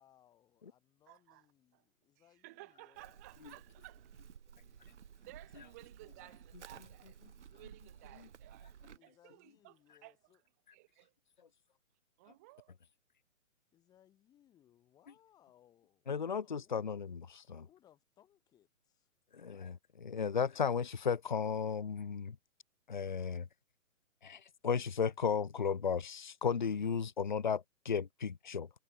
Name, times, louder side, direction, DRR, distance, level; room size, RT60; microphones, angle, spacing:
voice 1, 0.0-3.2 8.9-10.4 13.7-17.0 17.6-19.1, left 11 dB, 10° left, 3.8 m, -68 dB
voice 2, 1.1-1.4 1.7-1.8 2.2-4.2 5.0-9.8 10.0-10.1 10.7-11.1 12.2-12.7, right 21 dB, 10° right, 1.1 m, -57 dB
Livestock farm animals working animals, 2.9-9.0, right 8 dB, 55° right, 1.3 m, -55 dB
voice 3, 16.1-17.2 17.5-17.7 19.3-22.4 22.9-23.5 24.2-28.7, left 6 dB, 35° left, 0.5 m, -34 dB
hypercardioid pair, 170°, 42 cm